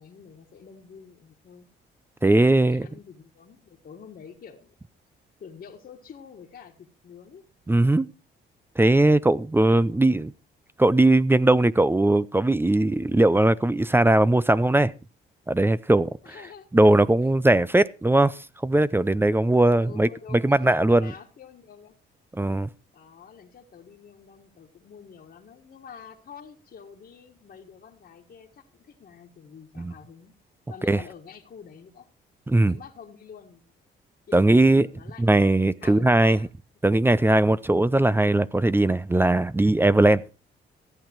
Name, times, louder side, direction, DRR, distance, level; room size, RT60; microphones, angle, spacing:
voice 1, 0.0-1.7 2.3-4.8 5.4-7.4 9.9-10.0 16.2-16.7 19.8-22.0 22.9-30.3 30.7-32.1 32.6-33.7 34.3-35.4 35.8-36.5, left 7 dB, 50° left, 1.7 m, -47 dB
voice 2, 2.2-2.9 7.7-8.1 8.8-10.3 10.8-14.9 15.5-16.1 16.7-21.1 22.4-22.7 29.8-29.9 30.9-31.0 32.5-32.8 34.3-34.9 35.2-36.4 36.8-40.2, right 2 dB, 10° right, 0.5 m, -19 dB
14.5 x 8.7 x 4.5 m
cardioid pair, 90°, 20 cm